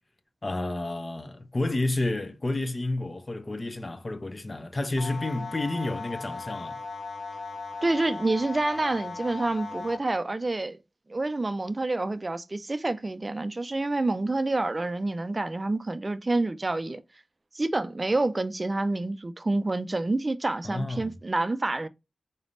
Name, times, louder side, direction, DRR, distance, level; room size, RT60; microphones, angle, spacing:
voice 1, 0.4-6.8 20.6-21.1, left 2 dB, 35° left, 0.6 m, -30 dB
sound 1, 5.0-10.0, left 4 dB, 85° left, 0.3 m, -37 dB
voice 2, 7.8-10.8 11.1-17.0 17.5-21.9, right 2 dB, 35° right, 0.4 m, -28 dB
3.9 x 3.3 x 2.6 m
wide cardioid pair, 65°, 0 cm